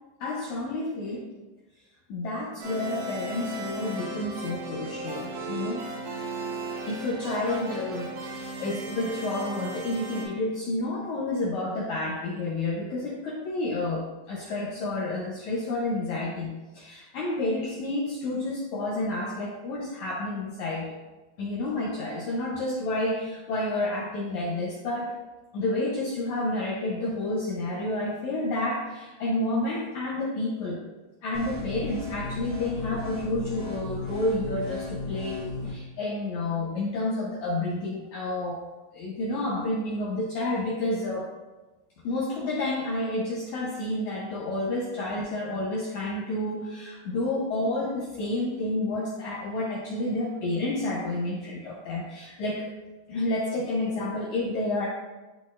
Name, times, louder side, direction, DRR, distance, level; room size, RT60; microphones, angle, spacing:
voice 1, 0.2-1.3 2.1-5.8 6.9-21.0 21.4-25.1 25.5-30.8 31.2-38.6 38.9-41.3 42.0-52.7 53.1-54.9, left 2 dB, 80° left, -4 dB, 1.7 m, -30 dB
sound 1, 2.6-10.2, right 2 dB, 80° right, 3.4 m, -36 dB
sound 2, 31.3-35.7, left 2 dB, 40° right, 0.7 m, -35 dB
12.5 x 4.1 x 2.5 m, 1.1 s
omnidirectional pair, 4.5 m